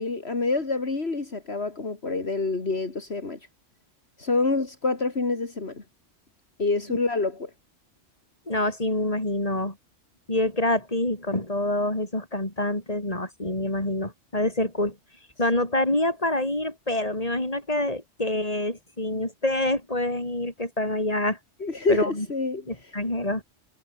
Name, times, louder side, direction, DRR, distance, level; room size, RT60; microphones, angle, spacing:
voice 1, 0.0-3.4 4.2-5.8 6.6-7.5 21.6-22.9, left 3 dB, 60° left, 3.1 m, -27 dB
voice 2, 8.5-9.8 10.3-15.0 15.4-21.4 21.9-22.3 22.7-23.4, left 1 dB, 30° left, 5.3 m, -26 dB
omnidirectional pair, 1.2 m